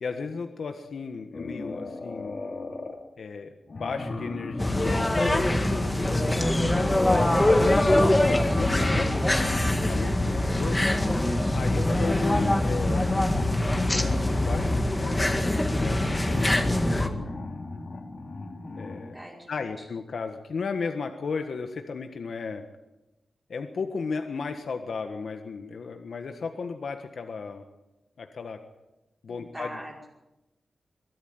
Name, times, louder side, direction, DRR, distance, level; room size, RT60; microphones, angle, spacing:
voice 1, 0.0-2.4 3.2-9.1 9.9-10.8 11.5-13.3 13.7-17.5 18.7-19.1 19.5-22.6 23.5-27.6 28.2-28.6 29.2-29.7, left 5 dB, 75° left, 6 dB, 1.5 m, -35 dB
sound 1, 1.3-3.1 3.7-10.8 11.8-19.2, left 2 dB, 45° left, 2.9 m, -36 dB
sound 2, 4.6-17.1, left 1 dB, 15° left, 1.9 m, -23 dB
voice 2, 10.0-10.6 19.1-19.9 29.3-30.1, equal, 15° right, -5 dB, 5.4 m, -42 dB
23.0 x 13.0 x 9.5 m, 1.0 s
wide cardioid pair, 115°, 0 cm